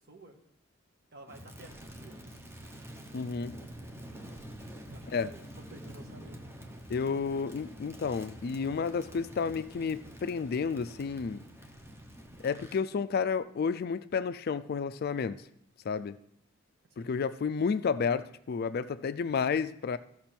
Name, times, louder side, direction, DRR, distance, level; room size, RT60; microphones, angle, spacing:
voice 1, 0.1-0.4 1.1-2.5 4.9-6.5 17.0-17.1, right 1 dB, 50° right, 1.5 m, -52 dB
Crackle, 1.3-12.9, right 1 dB, 10° right, 1.0 m, -47 dB
voice 2, 3.1-3.6 5.1-5.3 6.9-11.4 12.4-15.4 15.8-16.2 17.0-20.0, left 5 dB, 50° left, 0.4 m, -31 dB
14.0 x 6.0 x 4.4 m
head